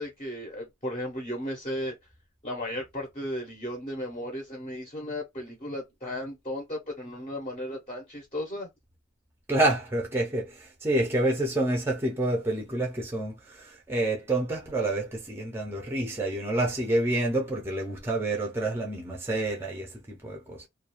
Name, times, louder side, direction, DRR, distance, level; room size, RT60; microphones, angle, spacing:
voice 1, 0.0-2.0 2.4-8.7, left 1 dB, 30° left, 0.6 m, -35 dB
voice 2, 9.5-20.7, right 1 dB, 10° right, 0.5 m, -28 dB
2.3 x 2.2 x 2.8 m
head